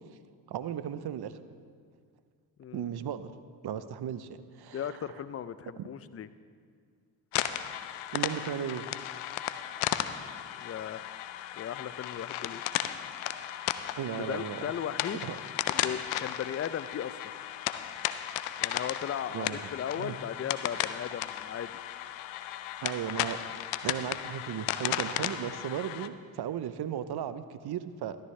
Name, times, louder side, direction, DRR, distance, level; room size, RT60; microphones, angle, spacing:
voice 1, 0.5-1.3 2.7-3.3 3.6-4.9 5.8-5.9 8.1-8.9 14.0-14.7 15.2-15.4 19.3-19.7 20.0-20.2 22.8-23.4 23.8-28.2, right 9 dB, 50° right, 13 dB, 0.8 m, -36 dB
voice 2, 2.6-2.9 4.7-6.3 10.6-11.0 11.5-12.6 14.1-15.3 15.7-17.2 18.6-21.8, left 9 dB, 30° left, 14 dB, 0.5 m, -37 dB
sound 1, 7.3-26.1, left 12 dB, 85° left, 0.6 m, -35 dB
13.5 x 12.5 x 3.3 m, 2.1 s
supercardioid pair, 50°, 49 cm